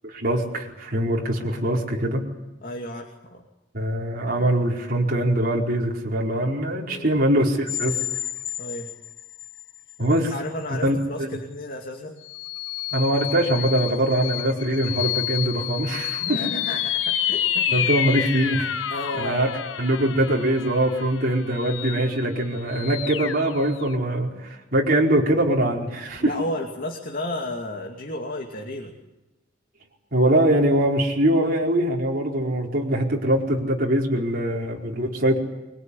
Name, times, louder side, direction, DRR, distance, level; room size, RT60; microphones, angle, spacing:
voice 1, 0.0-2.2 3.7-7.9 10.0-10.3 10.7-11.3 12.9-16.4 17.7-18.7 19.1-19.5 19.8-26.3 30.1-35.4, right 1 dB, 50° right, -2 dB, 4.7 m, -22 dB
voice 2, 2.6-3.4 6.8-7.1 8.6-8.9 10.3-12.2 16.2-18.0 18.9-19.5 26.2-28.9, left 1 dB, 50° left, 2 dB, 2.6 m, -33 dB
sound 1, 7.7-9.6 10.1-10.2 12.2-23.9, left 10 dB, 85° left, 1.2 m, -29 dB
25.0 x 23.0 x 10.0 m, 1.1 s
head